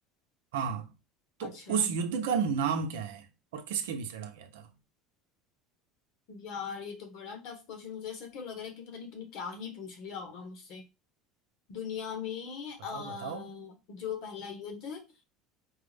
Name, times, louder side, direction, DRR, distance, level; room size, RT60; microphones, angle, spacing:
voice 1, 0.5-0.9 1.4-3.3 3.5-4.7 12.9-13.5, right 6 dB, 85° right, 0.6 m, -32 dB
voice 2, 1.4-1.9 6.3-10.8 11.7-15.0, left 7 dB, 65° left, 1.3 m, -40 dB
4.5 x 2.0 x 3.3 m
supercardioid pair, 105°, 0 cm